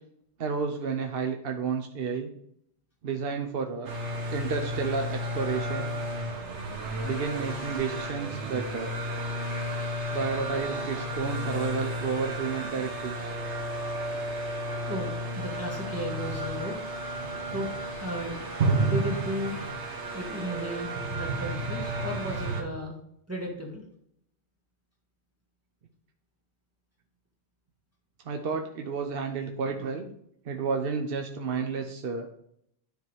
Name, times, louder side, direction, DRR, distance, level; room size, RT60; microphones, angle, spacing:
voice 1, 0.4-2.3 3.0-3.9 4.3-5.9 7.0-8.9 10.1-13.3 28.3-30.1 30.4-32.3, right 5 dB, 60° right, 4 dB, 1.0 m, -31 dB
sound 1, 3.9-22.6, right 1 dB, 90° right, 1.6 m, -32 dB
voice 2, 14.9-16.8 17.5-18.4 18.8-19.6 20.1-23.0 23.3-23.8, equal, 15° right, -1 dB, 1.5 m, -35 dB
10.5 x 3.6 x 4.7 m, 0.70 s
omnidirectional pair, 1.1 m